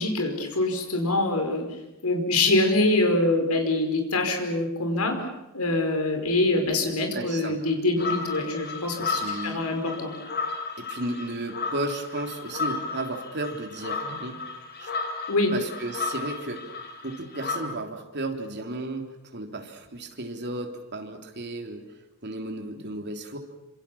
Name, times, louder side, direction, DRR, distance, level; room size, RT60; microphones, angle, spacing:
voice 1, 0.0-5.2 5.5-10.1 15.3-15.5, left 2 dB, 90° left, 5 dB, 5.0 m, -25 dB
voice 2, 7.1-7.6 9.1-9.6 10.8-14.4 14.8-14.9 15.5-16.7 17.0-21.8 22.2-23.4, right 2 dB, 50° right, 3 dB, 3.5 m, -34 dB
sound 1, 8.0-17.6, left 4 dB, 50° left, 4.2 m, -34 dB
27.0 x 26.5 x 7.2 m, 0.92 s
head